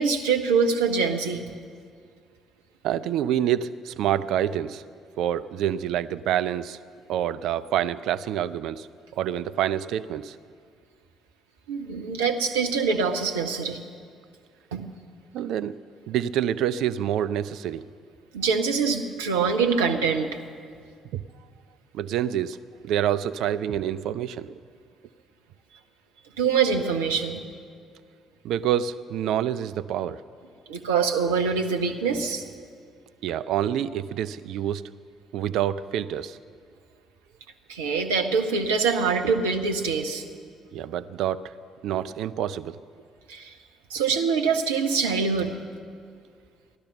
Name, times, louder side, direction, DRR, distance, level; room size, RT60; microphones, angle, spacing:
voice 1, 0.0-1.4 11.7-13.8 14.7-14.8 18.3-20.4 26.4-27.4 30.7-32.4 37.7-40.2 43.3-43.6 43.9-45.6, right 5 dB, 75° right, 4 dB, 0.9 m, -24 dB
voice 2, 2.8-4.8 5.2-6.8 7.1-8.9 9.1-10.4 15.3-15.8 16.1-17.8 21.1-21.2 21.9-22.6 22.8-24.6 28.4-30.2 33.2-34.8 35.3-36.4 40.7-41.5 41.8-42.8, right 10 dB, 60° right, 14 dB, 0.4 m, -27 dB
16.5 x 12.0 x 6.5 m, 2.2 s
figure-of-eight pair, 45°, 0 cm